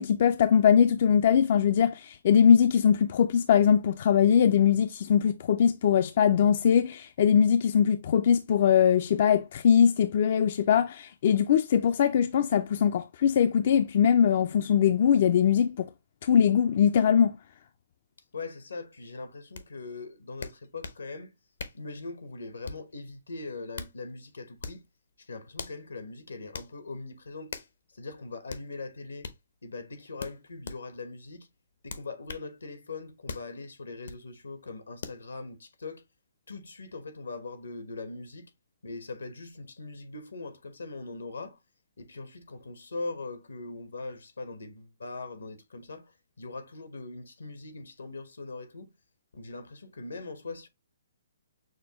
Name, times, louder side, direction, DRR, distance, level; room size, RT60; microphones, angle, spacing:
voice 1, 0.0-15.9 16.2-17.4, left 8 dB, 50° left, 0.3 m, -22 dB
voice 2, 18.3-21.3 21.7-24.8 25.2-27.5 27.9-29.3 29.6-31.5 31.8-36.0 36.5-38.5 38.8-41.6 42.0-48.9 49.3-50.7, left 3 dB, 90° left, 1.2 m, -41 dB
sound 1, 19.5-19.7 20.4-21.0 21.6-21.9 22.6-22.9 23.5-24.0 24.6-24.9 25.6-25.8 26.5-26.7 27.5-27.7 28.5-28.7 29.2-29.4 30.2-30.8 31.9-32.5 33.3-33.5 34.0-34.2 35.0-35.2, left 5 dB, 70° left, 0.7 m, -40 dB
6.3 x 2.3 x 2.9 m
hypercardioid pair, 145°, 0 cm